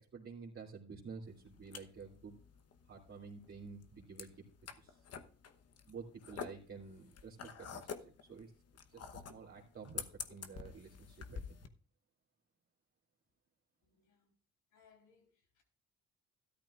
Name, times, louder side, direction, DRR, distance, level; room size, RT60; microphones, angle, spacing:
voice 1, 0.1-2.4 2.9-4.3 4.8-5.0 5.9-8.5 8.9-11.7, right 5 dB, 45° right, 2.6 m, -51 dB
sound 1, 1.3-11.7, left 7 dB, 55° left, 1.0 m, -48 dB
voice 2, 13.8-14.3 14.7-15.6, left 6 dB, 90° left, 3.8 m, -68 dB
13.5 x 12.0 x 2.5 m
cardioid pair, 90°, 30 cm